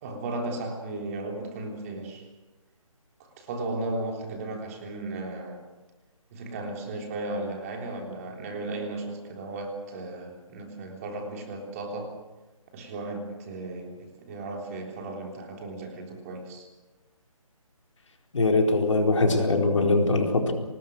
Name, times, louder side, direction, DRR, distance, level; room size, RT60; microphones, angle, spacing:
voice 1, 0.0-2.3 3.2-5.6 6.3-12.2 12.7-16.7, right 2 dB, 25° right, 2 dB, 3.5 m, -35 dB
voice 2, 18.3-20.5, left 2 dB, 60° left, 2 dB, 4.4 m, -22 dB
25.5 x 20.0 x 6.4 m, 1.1 s
figure-of-eight pair, 150°, 18 cm